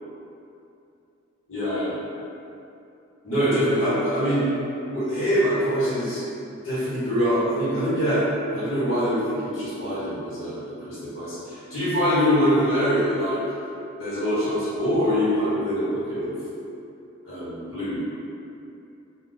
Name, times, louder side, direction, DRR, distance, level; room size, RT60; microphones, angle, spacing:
voice 1, 1.5-1.9 3.2-4.5 4.9-6.2 6.6-8.2 8.5-13.4 14.0-16.3 17.2-18.0, equal, 80° left, -12 dB, 1.2 m, -24 dB
2.4 x 2.3 x 3.9 m, 2.7 s
head